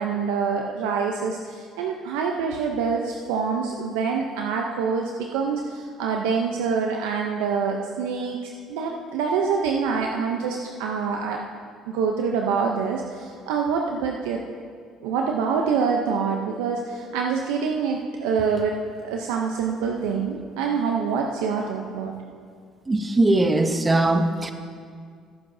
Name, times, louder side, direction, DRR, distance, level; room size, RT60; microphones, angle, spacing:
voice 1, 0.0-8.4 8.7-11.4 11.9-14.4 15.0-18.8 19.0-22.1, right 5 dB, 90° right, 1 dB, 0.6 m, -26 dB
voice 2, 22.9-24.5, right 2 dB, 20° right, 8 dB, 0.9 m, -20 dB
17.0 x 9.5 x 2.7 m, 2.1 s
supercardioid pair, 80°, 0 cm